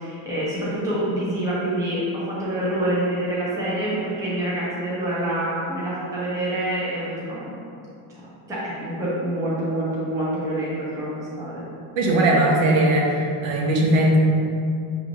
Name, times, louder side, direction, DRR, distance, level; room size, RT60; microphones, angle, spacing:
voice 1, 0.0-7.6 8.1-8.2 8.5-11.7, right 1 dB, 10° right, -8 dB, 0.4 m, -26 dB
voice 2, 12.0-14.2, right 1 dB, 75° right, -1 dB, 0.9 m, -19 dB
5.8 x 3.0 x 2.6 m, 2.6 s
cardioid pair, 175°, 46 cm